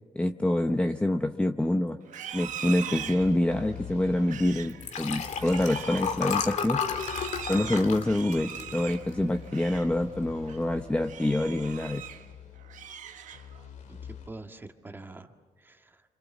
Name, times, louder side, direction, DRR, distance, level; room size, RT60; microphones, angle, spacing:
voice 1, 0.1-2.0 2.3-6.9 7.5-12.1, left 1 dB, 10° left, 6 dB, 0.8 m, -26 dB
Livestock farm animals working animals, 2.0-10.0 10.3-10.6 11.0-12.3 12.6-13.7, right 9 dB, 80° right, 1.3 m, -41 dB
sound 1, 2.3-14.3, left 8 dB, 85° left, 2.7 m, -46 dB
Liquid, 4.7-9.3 9.8-10.1 10.3-10.4, left 6 dB, 65° left, 2.0 m, -32 dB
voice 2, 13.9-16.0, right 2 dB, 15° right, 5 dB, 1.8 m, -46 dB
29.5 x 26.0 x 7.3 m, 1.4 s
cardioid pair, 135°, 13 cm